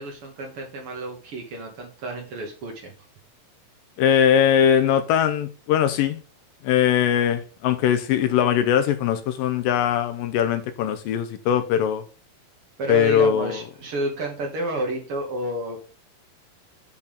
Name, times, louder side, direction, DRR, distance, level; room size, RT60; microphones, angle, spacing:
voice 1, 0.0-2.9 12.8-15.8, right 2 dB, 90° right, 1.2 m, -30 dB
voice 2, 4.0-6.2 6.6-12.0 12.9-13.6, left 9 dB, 85° left, 2.0 m, -21 dB
6.8 x 5.5 x 5.2 m
omnidirectional pair, 4.7 m